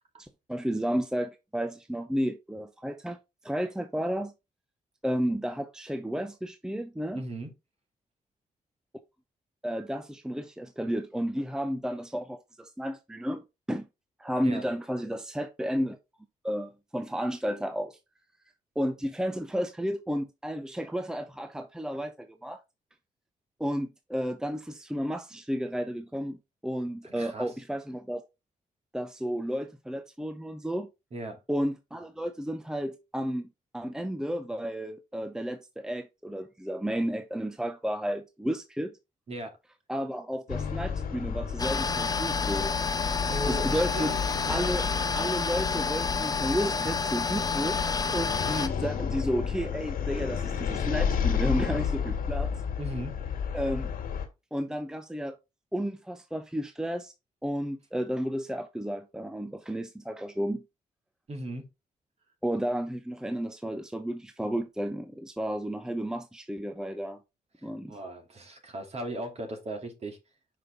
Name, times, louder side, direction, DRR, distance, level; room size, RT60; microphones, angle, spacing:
voice 1, 0.2-3.2 3.4-4.3 5.0-7.2 9.6-13.9 14.2-16.0 16.4-18.0 18.8-22.6 23.6-28.2 28.9-30.9 31.5-39.0 39.9-42.7 43.4-44.1 44.5-47.8 48.1-52.5 53.5-53.9 54.5-55.4 55.7-57.1 57.4-60.6 62.4-67.2 67.6-68.0, equal, 5° right, 0.7 m, -32 dB
voice 2, 7.1-7.5 14.4-14.7 27.0-27.5 31.1-31.4 39.3-39.6 43.3-44.6 45.0-45.2 52.8-53.1 61.3-61.7 67.6-70.2, right 1 dB, 45° right, 2.4 m, -38 dB
sound 1, 40.5-54.3, left 7 dB, 85° left, 1.7 m, -32 dB
sound 2, 41.6-48.7, left 5 dB, 25° left, 0.7 m, -29 dB
5.6 x 5.3 x 3.7 m
cardioid pair, 80°, 14 cm